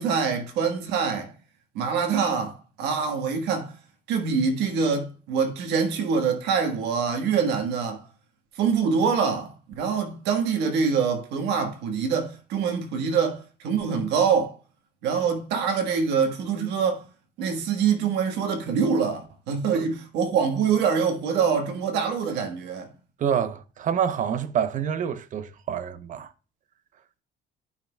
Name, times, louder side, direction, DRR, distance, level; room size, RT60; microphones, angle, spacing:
voice 1, 0.0-1.3 1.7-3.7 4.1-8.0 8.5-14.6 15.0-17.0 17.4-22.9, right 6 dB, 90° right, 1.4 m, -25 dB
voice 2, 23.2-26.3, right 8 dB, 50° right, 0.8 m, -27 dB
12.5 x 5.7 x 2.3 m
cardioid pair, 110°, 17 cm